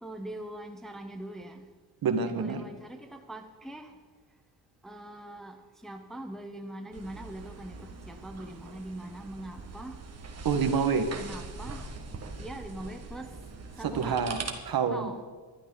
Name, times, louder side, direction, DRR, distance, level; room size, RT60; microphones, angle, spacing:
voice 1, 0.0-1.6 2.2-3.9 4.8-10.0 11.2-11.9 12.4-13.3 13.8-14.2 14.9-15.2, right 1 dB, ahead, 4 dB, 0.9 m, -42 dB
voice 2, 2.0-2.6 10.4-11.1 13.8-15.1, right 6 dB, 55° right, 6 dB, 1.7 m, -27 dB
sound 1, 6.9-14.5, right 4 dB, 35° right, 1.7 m, -42 dB
20.0 x 12.5 x 4.0 m, 1.5 s
cardioid pair, 140°, 43 cm